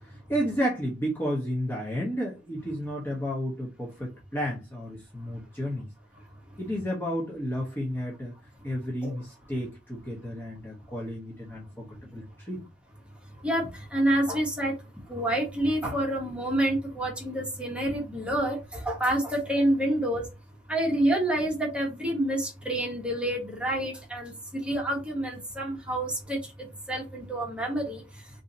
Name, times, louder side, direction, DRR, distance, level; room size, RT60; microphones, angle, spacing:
voice 1, 0.0-5.9 6.6-8.3 8.6-12.7, equal, 15° left, 0.9 m, -32 dB
voice 2, 13.4-14.7 15.1-20.3 20.7-28.0, right 1 dB, 5° right, 1.2 m, -28 dB
2.8 x 2.7 x 3.8 m
head